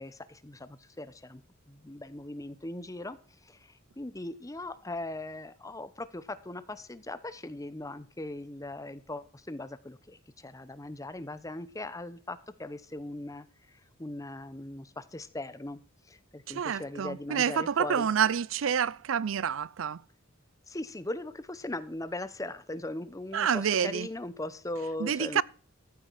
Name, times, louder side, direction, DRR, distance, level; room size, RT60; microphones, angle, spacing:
voice 1, 0.0-1.4 1.7-15.8 16.1-18.1 20.7-25.4, left 2 dB, 15° left, 0.9 m, -39 dB
voice 2, 16.5-20.0 23.3-24.1 25.0-25.4, right 8 dB, 70° right, 0.5 m, -28 dB
14.5 x 8.7 x 4.7 m
head